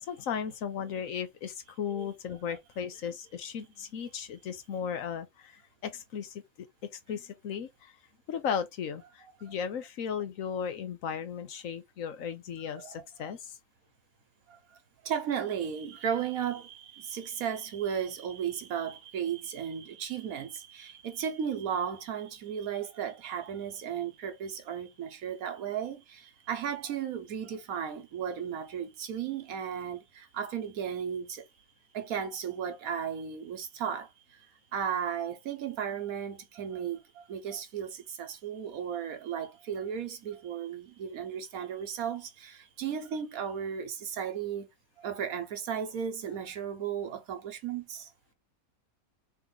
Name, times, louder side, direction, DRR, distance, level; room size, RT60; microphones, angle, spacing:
voice 1, 0.0-6.7 6.9-7.9 8.3-13.6, left 7 dB, 65° left, 1.1 m, -36 dB
voice 2, 12.7-13.3 15.0-31.4 31.9-34.1 34.7-37.0 37.3-44.7 45.0-48.1, right 8 dB, 75° right, 1.3 m, -35 dB
3.5 x 3.0 x 3.9 m
omnidirectional pair, 1.5 m